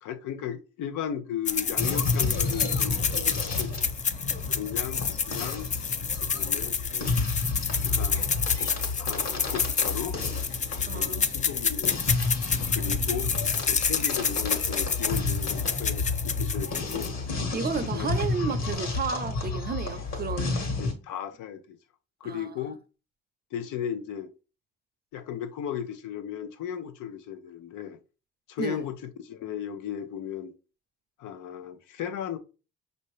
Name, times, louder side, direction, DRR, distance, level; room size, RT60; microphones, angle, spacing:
voice 1, 0.0-3.9 4.5-5.7 6.2-7.1 7.9-8.3 9.0-10.2 10.8-12.0 12.7-13.3 13.7-17.2 17.9-18.1 20.8-21.8 22.2-22.8 23.5-24.3 25.1-28.0 28.5-30.5 31.2-32.4, left 9 dB, 85° left, 0.6 m, -36 dB
sound 1, 1.4-17.3, left 6 dB, 25° left, 0.3 m, -29 dB
sound 2, 1.8-20.9, left 3 dB, 55° left, 1.3 m, -31 dB
voice 2, 10.8-11.3 12.8-12.9 17.5-20.6 22.2-22.5 28.6-28.8, right 6 dB, 30° right, 0.5 m, -32 dB
5.4 x 2.7 x 3.1 m
cardioid pair, 90°, 30 cm